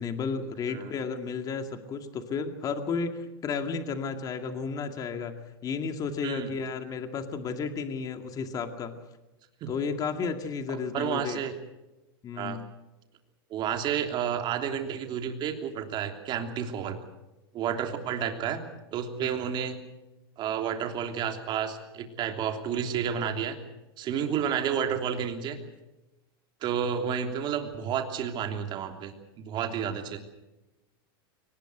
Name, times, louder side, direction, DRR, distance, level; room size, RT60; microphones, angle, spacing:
voice 1, 0.0-8.9 9.7-11.4 12.2-12.6 19.2-19.3, left 5 dB, 30° left, 7 dB, 2.2 m, -33 dB
voice 2, 10.7-11.5 12.4-12.6 13.5-17.0 17.5-18.6 18.9-19.7 20.4-23.6 24.0-25.6 26.6-29.1 29.4-30.2, right 8 dB, 35° right, 5 dB, 3.2 m, -31 dB
22.5 x 19.5 x 8.0 m, 1.0 s
supercardioid pair, 130°, 13 cm